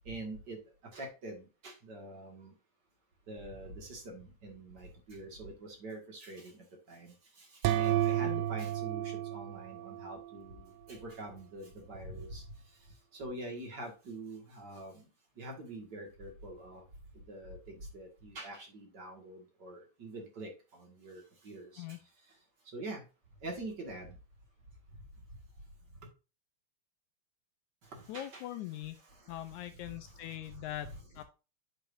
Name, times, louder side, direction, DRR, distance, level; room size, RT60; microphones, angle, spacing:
voice 1, 0.1-0.6 0.9-2.5 3.3-12.4 13.1-15.1 15.4-16.8 17.2-21.8 22.7-23.0 23.4-24.1 27.9-28.5 29.9-30.0 30.3-30.5 30.8-30.9, right 2 dB, 40° right, 2.0 m, -45 dB
sound 1, 7.6-10.4, right 13 dB, 85° right, 2.3 m, -32 dB
voice 2, 28.1-29.0 29.3-31.2, left 13 dB, 80° left, 1.9 m, -42 dB
8.8 x 6.2 x 2.6 m
omnidirectional pair, 3.8 m